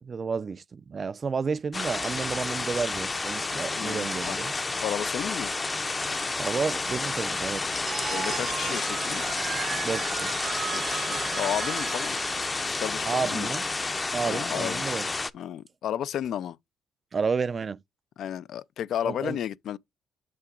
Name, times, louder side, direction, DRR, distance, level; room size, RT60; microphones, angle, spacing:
voice 1, 0.0-4.5 6.4-7.6 9.8-10.3 13.0-13.7 14.1-15.1 17.1-17.8 19.0-19.4, right 5 dB, 40° right, 0.4 m, -31 dB
sound 1, 1.7-15.3, left 3 dB, 25° left, 0.6 m, -30 dB
voice 2, 3.5-4.4 4.8-5.5 8.1-9.3 10.7-12.2 12.6-13.5 14.2-14.9 15.3-16.6 18.2-19.8, left 10 dB, 70° left, 0.4 m, -33 dB
Telephone, 7.8-13.6, right 8 dB, 60° right, 0.9 m, -36 dB
8.4 x 6.8 x 2.4 m
cardioid pair, 90°, 0 cm